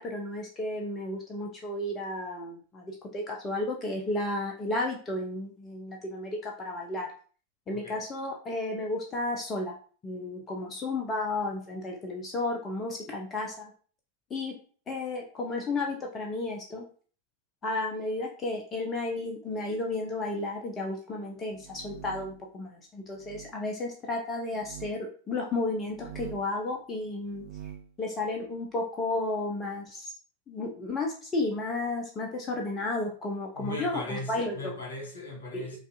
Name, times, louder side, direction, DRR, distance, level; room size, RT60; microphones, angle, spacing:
voice 1, 0.0-7.1 7.7-9.8 10.0-13.7 14.3-14.6 14.9-16.8 17.6-27.4 28.0-30.1 30.5-34.7 35.5-35.7, left 2 dB, 20° left, 1 dB, 0.7 m, -33 dB
voice 2, 7.7-8.0 33.5-35.8, left 1 dB, 65° left, 0 dB, 1.2 m, -38 dB
sound 1, 21.5-22.5 23.2-23.5 24.5-25.0 25.8-26.6 27.2-27.9, right 10 dB, 50° right, 0.3 m, -45 dB
5.1 x 2.5 x 2.3 m, 0.41 s
figure-of-eight pair, 90°, 0 cm